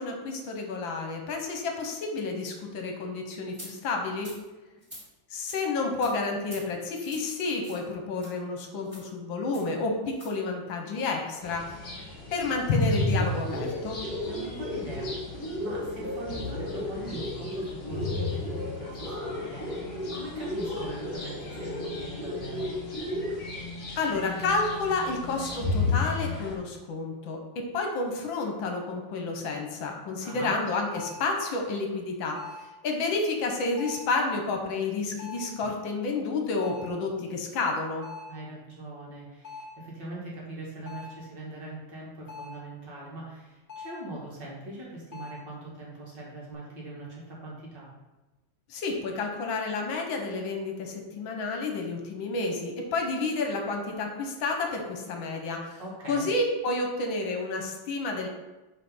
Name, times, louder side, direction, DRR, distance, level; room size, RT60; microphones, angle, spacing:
voice 1, 0.0-4.3 5.3-11.7 12.3-14.0 24.0-32.4 32.8-38.0 48.7-55.8 56.1-58.3, left 3 dB, 75° left, 3 dB, 1.7 m, -30 dB
sound 1, 3.5-3.7 4.2-4.4 4.8-5.0 5.5-5.6 6.0-6.1 6.4-6.6 7.0-7.3 7.6-7.8 8.2-8.3 8.9-9.1 9.5-9.7 10.1-10.3, equal, 15° right, 2.6 m, -45 dB
sound 2, 11.4-26.6, left 2 dB, 55° left, 2.0 m, -32 dB
voice 2, 14.3-22.7 30.2-30.6 38.3-47.9 55.8-56.3, right 2 dB, 60° right, -5 dB, 2.4 m, -42 dB
sound 3, 30.9-31.3 32.4-32.7 33.8-34.2 35.2-35.6 36.6-37.0 38.0-38.4 39.4-39.8 40.9-41.2 42.3-42.7 43.7-44.1 45.1-45.5, left 4 dB, 35° left, 1.7 m, -42 dB
5.7 x 4.6 x 5.5 m, 1.1 s
omnidirectional pair, 2.2 m